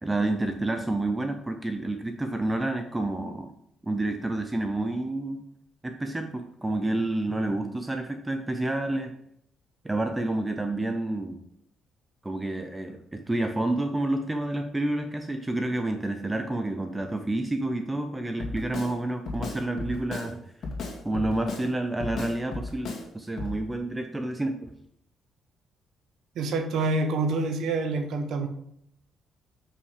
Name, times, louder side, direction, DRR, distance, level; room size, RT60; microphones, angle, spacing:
voice 1, 0.0-3.5 3.8-5.4 5.8-9.1 9.8-11.4 12.2-20.4 21.0-24.7, right 2 dB, 15° right, 6 dB, 0.7 m, -29 dB
Drum kit, 18.4-18.9 19.3-20.3 20.6-21.7 22.0-23.0 23.4-23.5, left 3 dB, 60° left, 2.0 m, -34 dB
voice 2, 26.3-28.5, right 3 dB, 75° right, 6 dB, 1.1 m, -27 dB
7.0 x 5.7 x 4.9 m, 0.72 s
cardioid pair, 90°, 0 cm